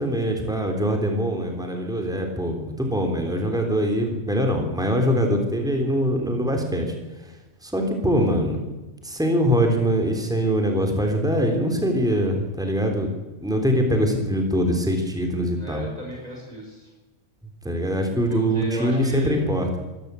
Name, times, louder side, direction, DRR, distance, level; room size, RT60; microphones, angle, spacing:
voice 1, 0.0-6.8 7.6-8.6 9.0-13.1 13.4-15.9 17.6-19.8, equal, 5° right, 3 dB, 3.5 m, -23 dB
voice 2, 15.6-16.9 18.3-19.4, equal, 30° right, -1 dB, 5.3 m, -34 dB
25.0 x 14.0 x 8.3 m, 1.1 s
omnidirectional pair, 1.4 m